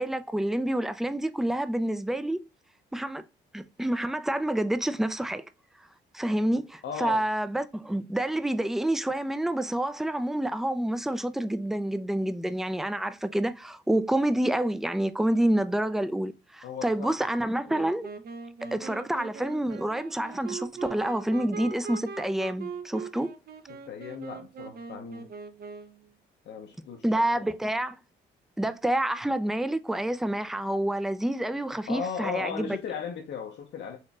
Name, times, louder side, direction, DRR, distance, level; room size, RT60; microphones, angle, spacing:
voice 1, 0.0-2.4 2.9-3.2 3.5-5.5 6.1-18.1 18.7-23.3 27.0-28.0 28.6-32.7, right 1 dB, ahead, 0.3 m, -28 dB
voice 2, 6.8-7.2 16.6-17.2 18.6-18.8 23.7-25.3 26.5-27.5 31.9-34.0, left 6 dB, 65° left, 0.8 m, -37 dB
Wind instrument woodwind instrument, 17.7-26.1, right 5 dB, 50° right, 0.6 m, -41 dB
4.3 x 3.0 x 2.2 m
cardioid pair, 90°, 20 cm